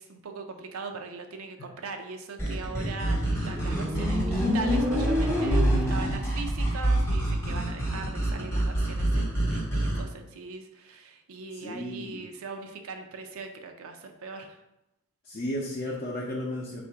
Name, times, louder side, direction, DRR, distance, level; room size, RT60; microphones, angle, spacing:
voice 1, 0.0-14.6, right 4 dB, 90° right, 5 dB, 0.5 m, -40 dB
sound 1, 2.4-10.0, right 1 dB, 15° left, 0.8 m, -27 dB
Motorcycle, 2.9-6.3, left 2 dB, 5° right, 0.5 m, -29 dB
voice 2, 5.4-6.2 11.6-12.2 15.3-16.8, left 1 dB, 45° left, -3 dB, 0.5 m, -33 dB
3.6 x 2.5 x 4.4 m, 0.89 s
head